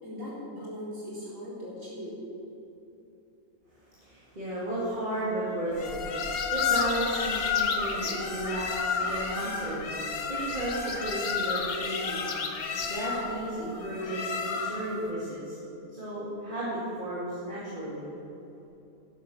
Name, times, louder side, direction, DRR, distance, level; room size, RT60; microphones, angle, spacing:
voice 1, 0.0-2.2 8.9-9.0 13.5-13.6, equal, 60° right, -7 dB, 4.2 m, -40 dB
voice 2, 4.0-9.9 10.3-12.3 12.8-15.6 15.9-18.0, right 1 dB, 35° right, -9 dB, 2.8 m, -34 dB
sound 1, 5.8-15.0, left 5 dB, 75° left, 1.6 m, -31 dB
11.5 x 10.5 x 6.5 m, 2.9 s
omnidirectional pair, 1.5 m